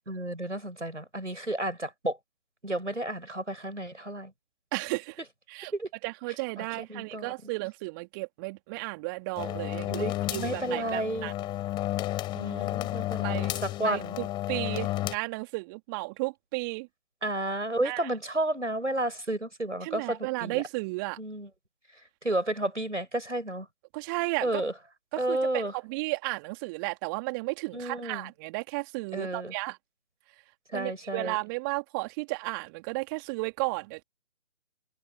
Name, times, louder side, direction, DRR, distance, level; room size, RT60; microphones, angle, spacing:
voice 1, 0.1-2.2 2.6-4.3 5.7-5.9 6.6-7.3 9.4-9.5 9.9-11.3 12.3-14.2 17.2-20.6 21.2-21.5 22.2-23.7 24.4-24.7 25.2-25.7 27.7-28.3 29.1-29.5 30.7-31.4, right 1 dB, 85° right, 6.4 m, -32 dB
voice 2, 4.7-5.2 5.5-5.7 6.0-11.3 13.2-13.5 13.8-16.9 17.8-18.1 19.8-21.2 23.9-24.6 25.1-29.8 30.7-34.0, right 27 dB, 15° right, 3.4 m, -34 dB
sound 1, 9.4-15.1, left 15 dB, 10° left, 7.2 m, -32 dB
figure-of-eight pair, 145°, 35 cm